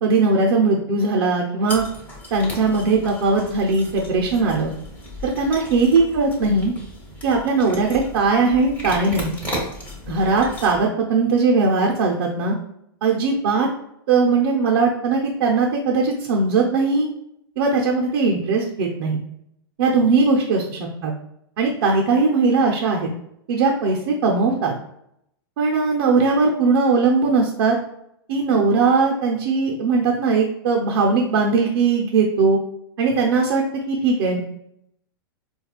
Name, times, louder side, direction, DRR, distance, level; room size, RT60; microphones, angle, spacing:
voice 1, 0.0-1.8 2.3-4.7 5.2-6.7 7.2-9.3 10.1-12.6 13.0-13.7 14.1-17.1 17.6-19.2 19.8-21.1 21.6-23.1 23.5-24.7 25.6-27.8 28.3-32.6 33.0-33.6 33.9-34.4, right 4 dB, 70° right, -1 dB, 0.6 m, -19 dB
sound 1, 1.7-10.8, left 1 dB, 10° left, 1.1 m, -35 dB
4.3 x 2.3 x 2.3 m, 0.76 s
hypercardioid pair, 125°, 13 cm